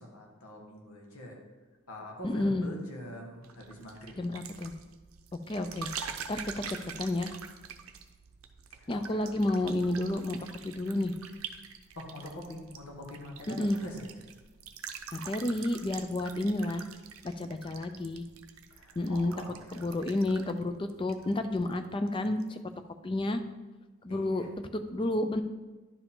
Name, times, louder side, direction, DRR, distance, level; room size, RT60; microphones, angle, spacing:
voice 1, 0.0-1.4 1.9-4.1 8.7-9.6 11.9-14.1 18.7-20.1 24.1-24.5, left 1 dB, 80° left, 0 dB, 1.7 m, -45 dB
voice 2, 2.2-2.7 4.2-4.7 5.3-5.9 6.3-7.3 8.9-10.4 10.6-11.1 13.5-13.8 15.1-16.9 17.2-18.2 19.0-19.3 19.7-22.6 23.0-23.4 24.0-24.4 24.7-25.4, left 1 dB, 25° left, 9 dB, 0.4 m, -30 dB
sound 1, 3.4-21.8 22.1-22.5, right 7 dB, 70° right, 0.6 m, -45 dB
11.0 x 4.8 x 3.7 m, 1.2 s
head